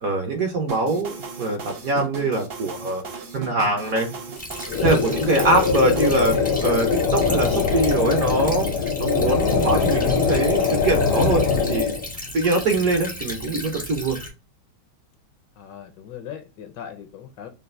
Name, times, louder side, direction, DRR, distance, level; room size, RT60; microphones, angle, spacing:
voice 1, 0.0-3.0 3.3-4.1 4.8-8.7 9.0-12.0 12.3-14.2, right 2 dB, 60° right, 4 dB, 1.0 m, -23 dB
sound 1, 0.7-6.4, right 5 dB, 85° right, 0.5 m, -36 dB
Stream / Trickle dribble, 4.4-14.3, left 1 dB, 10° left, 0.5 m, -35 dB
sound 2, 4.7-12.1, left 5 dB, 90° left, 1.6 m, -22 dB
voice 2, 15.6-17.5, left 9 dB, 70° left, 7 dB, 1.2 m, -39 dB
5.3 x 2.5 x 2.5 m, 0.29 s
omnidirectional pair, 2.2 m